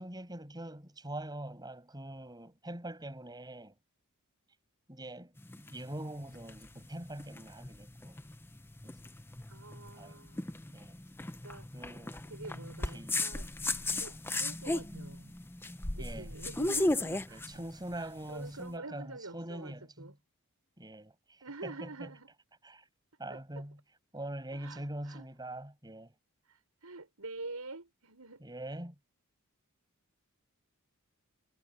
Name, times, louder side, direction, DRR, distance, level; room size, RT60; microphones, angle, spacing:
voice 1, 0.0-3.7 4.9-8.2 8.8-9.0 10.0-10.2 10.7-11.0 11.7-12.2 12.9-13.3 16.0-16.3 17.3-20.1 20.8-22.1 22.6-22.9 23.2-23.8 24.1-26.1 28.4-28.9, right 1 dB, 20° right, 6.4 m, -43 dB
sound 1, 5.4-18.6, left 2 dB, 10° left, 0.6 m, -36 dB
voice 2, 9.5-10.8 11.4-11.7 12.3-13.5 14.0-15.3 15.9-17.4 17.9-20.1 21.4-22.3 23.3-23.4 24.5-25.3 26.5-26.6 26.8-28.4, right 3 dB, 80° right, 5.7 m, -46 dB
head